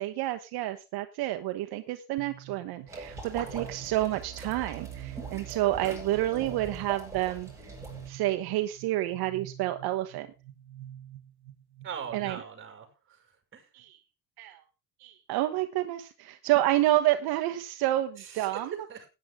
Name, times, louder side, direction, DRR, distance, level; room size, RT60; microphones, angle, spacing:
voice 1, 0.0-7.5 8.1-10.3 12.1-12.4 13.7-14.0 14.4-14.6 15.0-18.8, right 15 dB, 70° right, 7 dB, 1.2 m, -29 dB
sound 1, 2.2-12.3, right 12 dB, 85° right, 1.4 m, -46 dB
sound 2, 2.9-8.1, right 3 dB, 5° right, 7.0 m, -42 dB
voice 2, 11.8-13.7 18.2-18.6 18.9-19.1, right 7 dB, 30° right, 4 dB, 5.7 m, -42 dB
16.5 x 9.8 x 3.6 m, 0.28 s
cardioid pair, 135°, 39 cm